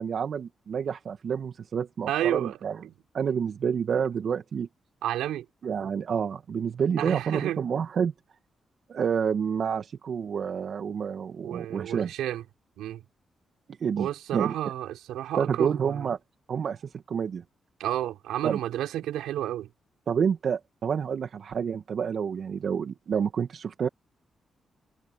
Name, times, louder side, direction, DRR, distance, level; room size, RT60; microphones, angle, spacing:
voice 1, 0.0-2.8 3.1-4.7 5.6-8.1 8.9-12.1 13.8-14.5 15.4-16.2 16.5-17.4 18.4-18.6 20.1-23.9, right 7 dB, 65° right, 2.1 m, -28 dB
voice 2, 2.1-2.6 2.8-2.9 5.0-5.4 7.0-7.6 11.4-12.4 12.8-13.0 14.0-16.0 17.8-19.7, right 12 dB, 85° right, 4.0 m, -31 dB
supercardioid pair, 50°, 0 cm